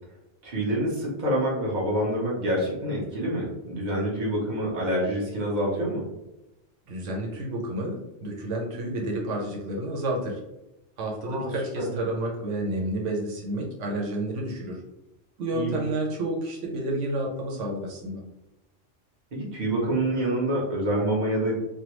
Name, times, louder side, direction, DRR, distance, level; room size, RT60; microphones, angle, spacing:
voice 1, 0.4-6.0 11.2-11.5 11.8-11.9 15.5-15.8 19.3-21.6, right 1 dB, 40° right, -4 dB, 1.0 m, -27 dB
voice 2, 6.9-10.4 11.0-14.8 15.4-18.2, right 1 dB, 85° right, -1 dB, 1.0 m, -30 dB
3.3 x 2.2 x 3.0 m, 0.93 s
omnidirectional pair, 1.2 m